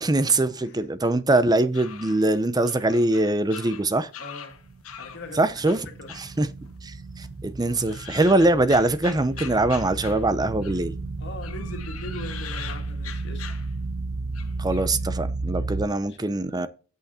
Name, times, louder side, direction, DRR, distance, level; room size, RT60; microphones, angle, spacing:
voice 1, 0.0-4.1 5.3-5.9 6.1-6.5 6.8-10.9 14.6-16.7, right 2 dB, 20° right, 0.6 m, -23 dB
sound 1, 1.5-5.3 5.7-6.9 7.2-10.9 11.4-14.0 14.3-14.9, left 8 dB, 85° left, 1.2 m, -42 dB
voice 2, 4.2-4.6 5.0-6.1 11.2-13.5 15.7-16.5, left 2 dB, 55° left, 2.0 m, -41 dB
sound 2, 4.5-15.9, right 3 dB, 85° right, 1.1 m, -33 dB
8.3 x 6.3 x 4.2 m
head